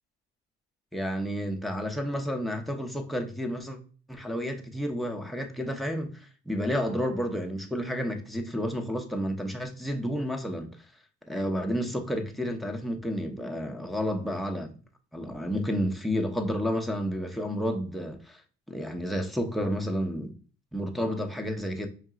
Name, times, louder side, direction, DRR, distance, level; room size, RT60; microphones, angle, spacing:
voice 1, 0.9-3.8 4.1-10.7 11.3-14.7 15.1-18.4 18.7-20.3 20.7-21.9, equal, ahead, 0.7 m, -31 dB
4.8 x 2.7 x 2.4 m
supercardioid pair, 90°, 30 cm